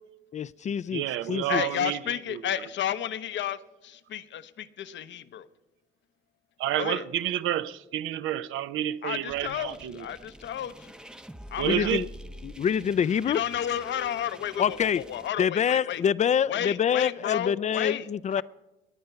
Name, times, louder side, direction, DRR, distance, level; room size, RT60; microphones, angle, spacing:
voice 1, 0.3-1.0 1.3-1.6 11.6-12.1 12.4-13.4 14.6-15.0 15.4-18.4, left 8 dB, 35° left, 19 dB, 0.4 m, -26 dB
voice 2, 0.9-2.0 2.3-2.6 6.6-10.1 11.6-12.1, right 12 dB, 80° right, 14 dB, 0.6 m, -29 dB
voice 3, 1.5-5.5 6.8-7.0 9.0-10.9 11.5-11.9 13.3-16.0 16.5-18.1 18.4-18.5, left 10 dB, 65° left, 14 dB, 0.8 m, -32 dB
sound 1, 9.3-15.3, equal, 5° right, 0.6 m, -46 dB
19.0 x 9.4 x 5.7 m, 1.0 s
cardioid pair, 90°, 20 cm